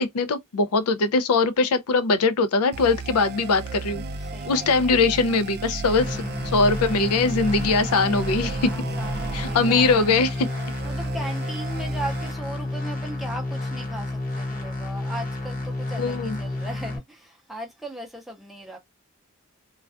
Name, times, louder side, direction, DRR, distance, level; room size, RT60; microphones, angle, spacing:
voice 1, 0.0-4.0 4.5-6.2 6.4-8.7 9.3-10.5 16.0-16.4, left 3 dB, 90° left, 0.5 m, -21 dB
sound 1, 2.7-12.3, right 4 dB, 45° right, 0.3 m, -34 dB
voice 2, 4.2-4.9 6.0-6.3 8.7-9.9 10.8-18.8, right 1 dB, ahead, 0.6 m, -38 dB
sound 2, 6.0-17.0, left 2 dB, 40° left, 0.8 m, -30 dB
2.3 x 2.2 x 2.3 m
head